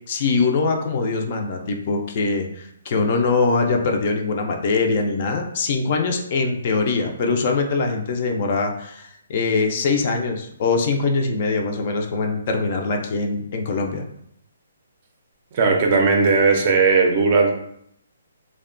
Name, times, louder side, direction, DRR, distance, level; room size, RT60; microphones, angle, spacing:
voice 1, 0.1-14.0, left 4 dB, 40° left, 3 dB, 0.3 m, -22 dB
voice 2, 15.5-17.5, right 4 dB, 35° right, 2 dB, 0.4 m, -17 dB
2.7 x 2.1 x 2.5 m, 0.73 s
hypercardioid pair, 160°, 0 cm